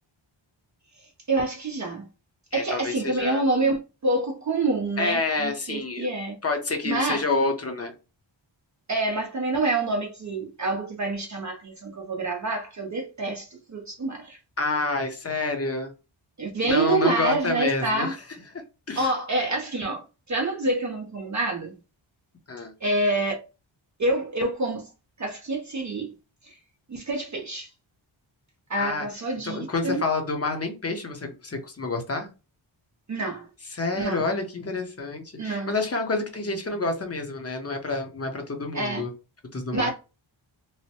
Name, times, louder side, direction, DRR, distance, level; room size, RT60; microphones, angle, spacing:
voice 1, 0.9-2.1 2.5-6.4 6.8-7.2 8.9-14.4 16.4-18.1 19.0-21.8 22.8-23.4 24.0-24.9 25.2-26.1 26.4-26.5 26.9-27.7 28.7-30.0 33.1-33.5 33.9-34.2 35.4-35.7 38.7-39.0 39.7-39.9, right 2 dB, 40° right, 0.6 m, -27 dB
voice 2, 2.5-3.4 5.0-6.1 6.4-7.9 14.6-15.9 16.6-18.2 18.9-19.1 22.5-22.7 28.8-29.1 29.4-32.3 33.7-39.1 39.5-39.9, left 3 dB, 30° left, 0.8 m, -28 dB
3.1 x 2.1 x 2.8 m
wide cardioid pair, 90°, 47 cm